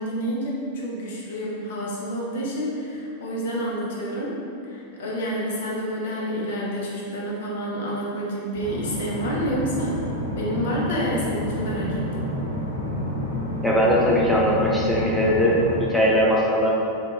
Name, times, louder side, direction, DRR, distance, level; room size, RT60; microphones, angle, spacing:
voice 1, 0.0-4.4 4.6-10.0 10.4-12.3, equal, 60° left, -5 dB, 0.5 m, -28 dB
sound 1, 8.5-15.8, left 1 dB, 85° right, 0.5 m, -29 dB
voice 2, 13.6-16.7, equal, ahead, -5 dB, 0.4 m, -20 dB
2.4 x 2.1 x 3.2 m, 2.6 s
figure-of-eight pair, 90°, 0 cm